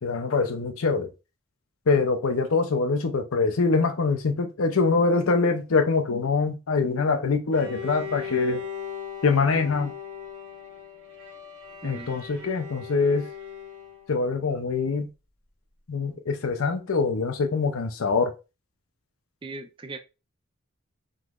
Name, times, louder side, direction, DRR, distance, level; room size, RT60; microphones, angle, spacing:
voice 1, 0.0-1.1 1.9-8.6 9.2-9.9 11.8-13.3 14.1-15.1 15.9-18.3, left 4 dB, 80° left, 0.6 m, -24 dB
Bowed string instrument, 7.5-14.3, left 6 dB, 90° right, 1.5 m, -39 dB
voice 2, 11.8-12.2 19.4-20.0, right 2 dB, 25° right, 0.4 m, -39 dB
3.8 x 3.1 x 2.3 m
head